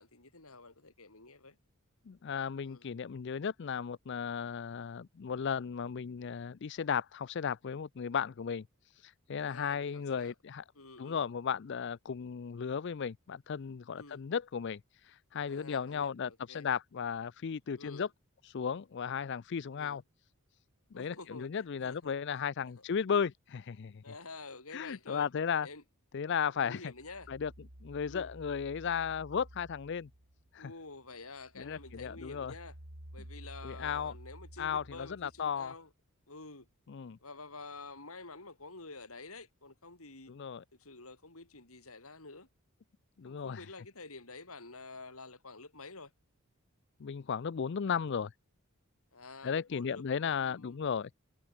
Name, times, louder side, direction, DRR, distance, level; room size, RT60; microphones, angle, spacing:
voice 1, 0.0-1.6 2.6-2.9 9.4-10.3 10.7-11.2 14.0-14.2 15.5-16.7 17.7-18.1 19.8-20.0 20.9-22.1 22.6-22.8 24.0-25.3 25.6-25.8 26.5-27.3 28.0-28.3 30.6-32.8 33.1-35.9 36.3-36.7 37.2-40.3 40.7-42.5 43.2-46.1 49.1-50.8, left 3 dB, 75° left, 5.0 m, -49 dB
voice 2, 2.1-8.6 8.9-10.6 11.0-18.1 18.4-20.0 20.9-24.0 24.7-25.7 26.1-26.9 27.3-27.5 27.8-30.1 30.5-30.7 31.6-32.5 33.6-34.1 34.6-35.7 36.9-37.2 40.3-40.6 43.2-43.6 47.0-48.3 49.4-51.1, left 6 dB, 50° left, 0.4 m, -35 dB
sound 1, 26.9-30.7 31.1-35.7, right 1 dB, 80° right, 4.3 m, -52 dB
head